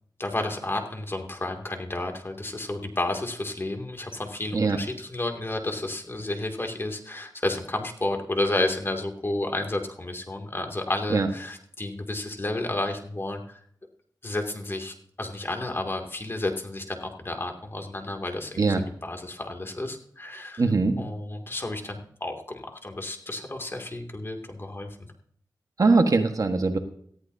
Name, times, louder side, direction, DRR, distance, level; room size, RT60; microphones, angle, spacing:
voice 1, 0.2-13.6 14.2-18.6 19.0-20.6 21.0-25.0, left 2 dB, 30° left, 3 dB, 2.4 m, -31 dB
voice 2, 20.6-21.0 25.8-26.8, right 3 dB, 50° right, 6 dB, 1.4 m, -21 dB
18.5 x 14.0 x 2.7 m, 0.63 s
wide cardioid pair, 90°, 7 cm